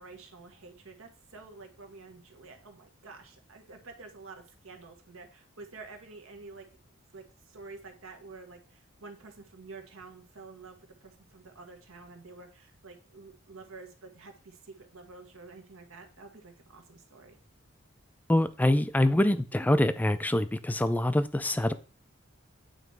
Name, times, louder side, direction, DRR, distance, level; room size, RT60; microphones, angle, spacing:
voice 1, 0.0-6.7 7.1-17.4, right 3 dB, 85° right, 1.3 m, -49 dB
voice 2, 18.3-21.7, left 1 dB, 10° left, 0.3 m, -25 dB
8.9 x 3.1 x 4.6 m
head